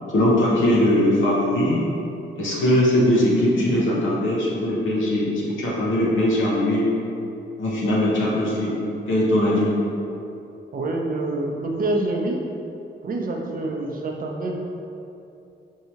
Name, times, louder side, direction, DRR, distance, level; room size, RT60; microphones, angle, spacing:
voice 1, 0.1-1.8 2.4-6.8 7.6-8.7 9.1-9.7, left 1 dB, 80° left, -6 dB, 0.8 m, -20 dB
voice 2, 10.7-12.4 13.0-14.6, right 2 dB, 45° right, 0 dB, 0.6 m, -26 dB
4.6 x 2.7 x 2.8 m, 2.8 s
cardioid pair, 80°, 20 cm